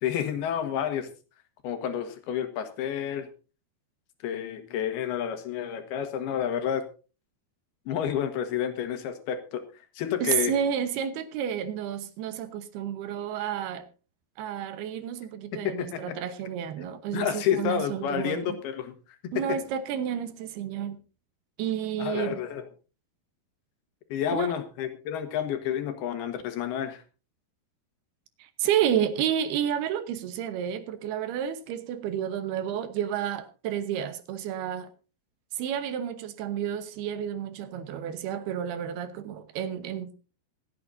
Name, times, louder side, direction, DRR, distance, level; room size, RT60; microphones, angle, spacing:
voice 1, 0.0-1.1 1.6-3.3 4.2-6.8 7.9-9.6 10.0-10.5 15.6-16.2 17.1-18.9 19.3-19.4 22.0-22.6 24.1-27.0, left 9 dB, 75° left, 3.3 m, -30 dB
voice 2, 10.2-13.8 14.4-18.6 19.3-21.0 21.6-22.4 24.3-24.5 28.4-34.9 35.5-40.1, right 9 dB, 75° right, 3.0 m, -30 dB
26.0 x 8.9 x 2.7 m
omnidirectional pair, 4.7 m